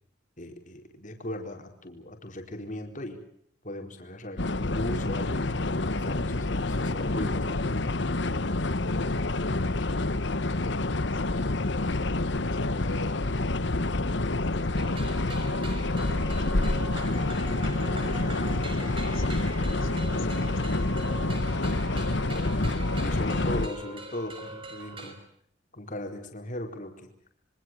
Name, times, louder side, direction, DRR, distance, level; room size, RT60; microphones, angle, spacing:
voice 1, 0.4-3.2 3.6-7.6 23.0-25.2 25.7-27.1, left 1 dB, 40° left, 4 dB, 4.4 m, -38 dB
sound 1, 4.4-23.7, left 2 dB, 60° left, 1.2 m, -28 dB
voice 2, 8.8-17.4 17.9-19.5 19.8-21.6, left 2 dB, 90° left, 7 dB, 5.7 m, -46 dB
sound 2, 14.7-25.1, right 3 dB, 25° right, 5.0 m, -42 dB
27.0 x 24.5 x 7.6 m, 0.67 s
head